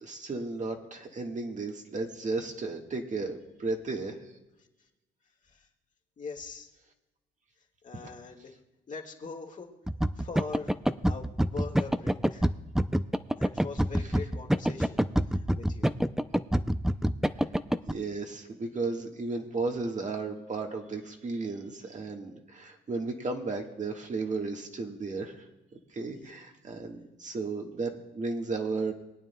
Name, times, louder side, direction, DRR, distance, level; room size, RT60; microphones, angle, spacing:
voice 1, 0.0-4.2 14.0-14.1 17.9-25.5 25.9-28.9, right 3 dB, 40° right, 2 dB, 1.4 m, -34 dB
voice 2, 6.2-6.7 7.8-8.6 8.9-9.7 10.2-10.7 11.0-12.5 13.4-15.0 15.3-15.9 26.2-26.3, left 4 dB, 40° left, 1 dB, 1.7 m, -42 dB
sound 1, 9.9-17.9, equal, ahead, 0.4 m, -26 dB
23.0 x 9.1 x 2.2 m, 1.0 s
cardioid pair, 90°, 20 cm